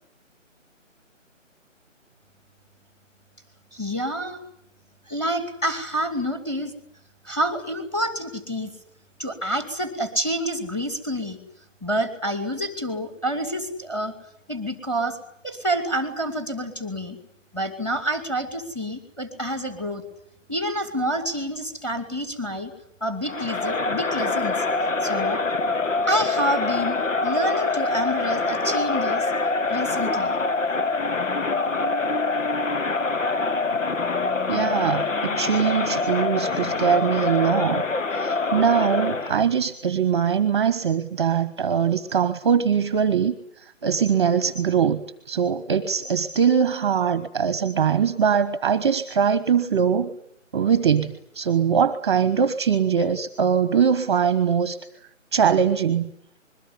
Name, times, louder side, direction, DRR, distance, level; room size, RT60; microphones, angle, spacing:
voice 1, 3.7-4.4 5.1-6.7 7.2-8.7 9.2-11.4 11.8-14.1 14.5-15.2 15.4-17.2 17.5-20.0 20.5-22.7 23.0-24.6 25.0-25.4 26.1-29.3 29.7-30.4, equal, 5° left, 8 dB, 2.5 m, -28 dB
Crowd, 23.3-39.4, left 3 dB, 75° left, 1.6 m, -25 dB
voice 2, 34.5-37.8 38.1-43.3 43.8-45.0 45.3-50.1 50.5-54.8 55.3-56.1, right 7 dB, 20° right, 12 dB, 1.3 m, -22 dB
26.5 x 22.0 x 9.6 m, 0.69 s
figure-of-eight pair, 160°, 39 cm